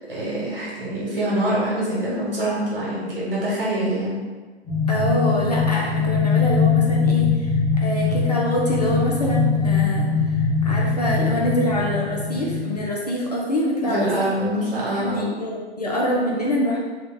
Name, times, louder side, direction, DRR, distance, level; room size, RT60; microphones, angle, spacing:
voice 1, 0.1-4.2 13.8-15.3, right 1 dB, 55° right, -6 dB, 1.4 m, -25 dB
sound 1, 4.6-12.8, left 5 dB, 10° left, 1.0 m, -21 dB
voice 2, 4.9-16.8, equal, 40° left, -3 dB, 0.4 m, -25 dB
2.8 x 2.2 x 3.7 m, 1.3 s
figure-of-eight pair, 140°, 34 cm